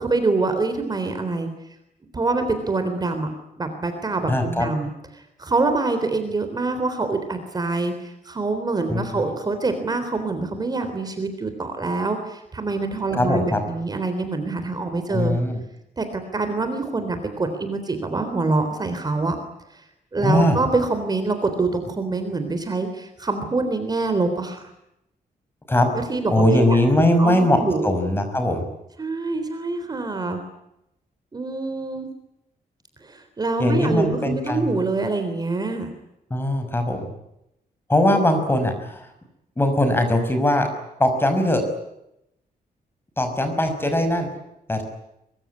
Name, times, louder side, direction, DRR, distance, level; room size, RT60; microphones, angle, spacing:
voice 1, 0.0-1.5 2.1-3.3 3.6-15.4 16.0-19.4 20.1-24.6 26.0-26.8 27.2-27.9 29.0-30.4 31.3-32.1 33.0-35.9, right 3 dB, 25° right, 7 dB, 3.6 m, -25 dB
voice 2, 4.3-4.7 8.9-9.2 13.1-13.6 15.1-15.6 20.2-20.6 25.7-25.9 26.3-28.6 33.6-34.7 36.3-37.1 37.9-39.1 39.6-40.7 41.0-41.7 43.2-44.3 44.7-44.8, left 1 dB, 15° left, 7 dB, 5.7 m, -20 dB
23.5 x 23.5 x 9.8 m, 0.83 s
wide cardioid pair, 165°, 15 cm